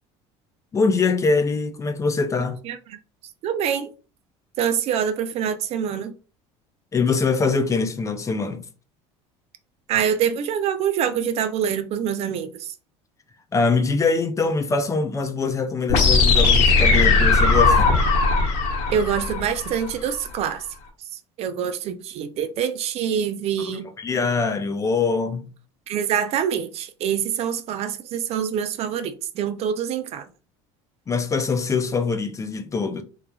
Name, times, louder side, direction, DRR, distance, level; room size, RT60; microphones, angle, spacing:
voice 1, 0.7-2.6 6.9-8.7 13.5-17.9 24.0-25.5 31.1-33.0, left 4 dB, 20° left, 0.4 m, -23 dB
voice 2, 3.4-3.9 4.6-6.1 9.9-12.7 18.9-20.7 21.1-23.9 25.9-30.3, right 8 dB, 50° right, 0.4 m, -25 dB
sound 1, 15.9-19.9, left 4 dB, 65° left, 1.0 m, -18 dB
3.1 x 2.3 x 2.2 m
supercardioid pair, 105°, 14 cm